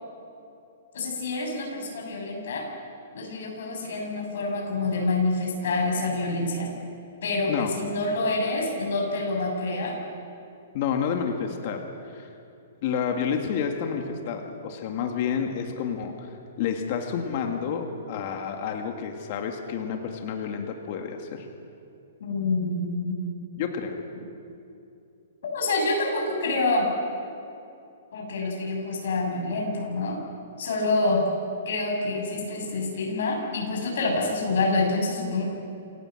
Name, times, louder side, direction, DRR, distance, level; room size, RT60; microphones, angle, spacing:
voice 1, 0.9-2.7 3.1-6.7 7.2-10.0 22.2-23.3 25.4-26.9 28.1-30.2 30.6-31.3 31.7-35.5, left 2 dB, 65° left, 0 dB, 7.9 m, -27 dB
voice 2, 10.7-11.8 12.1-12.3 12.8-16.3 16.6-21.5 23.6-24.0, left 7 dB, 40° left, 3 dB, 2.0 m, -29 dB
28.0 x 17.5 x 7.8 m, 2.7 s
hypercardioid pair, 165°, 0 cm